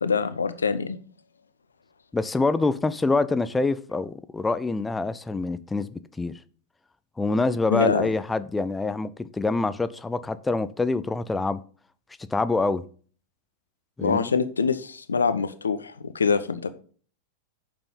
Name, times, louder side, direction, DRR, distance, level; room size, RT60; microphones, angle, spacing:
voice 1, 0.0-1.0 7.7-8.1 14.0-16.7, left 5 dB, 75° left, 0.8 m, -24 dB
voice 2, 2.1-6.3 7.2-11.6 12.3-12.8 14.0-14.3, left 3 dB, 10° left, 0.6 m, -26 dB
8.7 x 6.9 x 3.9 m
figure-of-eight pair, 90°, 0 cm